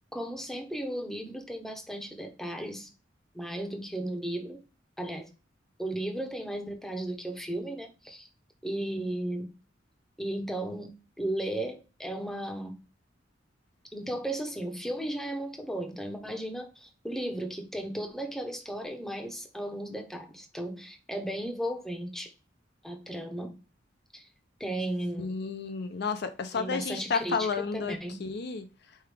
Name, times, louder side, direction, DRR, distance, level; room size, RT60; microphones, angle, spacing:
voice 1, 0.1-2.9 3.3-4.6 5.0-5.3 5.8-8.3 8.6-9.5 10.2-12.8 13.9-22.3 22.8-23.6 24.1-24.2 24.6-25.4 26.5-28.2, right 1 dB, ahead, 0.8 m, -35 dB
voice 2, 25.2-28.7, left 5 dB, 60° left, 0.5 m, -31 dB
4.7 x 3.2 x 3.4 m
head